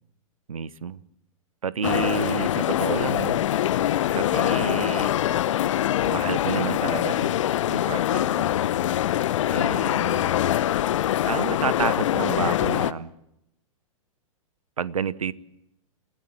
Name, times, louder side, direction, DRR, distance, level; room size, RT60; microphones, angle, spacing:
voice 1, 0.5-1.0 1.6-3.4 4.1-5.1 6.0-7.3 7.7-8.5 9.5-10.4 11.3-13.1 14.8-15.3, right 7 dB, 80° right, 19 dB, 1.0 m, -30 dB
sound 1, 1.8-12.9, left 12 dB, 60° left, 0.9 m, -24 dB
29.0 x 16.5 x 7.6 m, 0.81 s
figure-of-eight pair, 105°, 18 cm